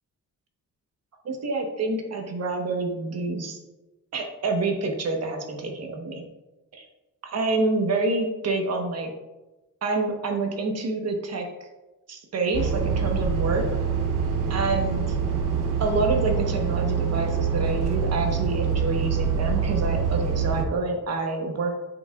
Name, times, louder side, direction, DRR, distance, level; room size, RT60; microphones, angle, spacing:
voice 1, 1.2-3.6 4.1-6.2 6.7-6.8 7.2-9.1 9.8-11.5 12.1-13.7 14.5-15.0 15.8-21.8, right 3 dB, 55° right, 3 dB, 1.1 m, -27 dB
sound 1, 12.5-20.7, right 6 dB, 85° right, 0.9 m, -25 dB
9.4 x 5.1 x 2.4 m, 1.1 s
wide cardioid pair, 155°, 31 cm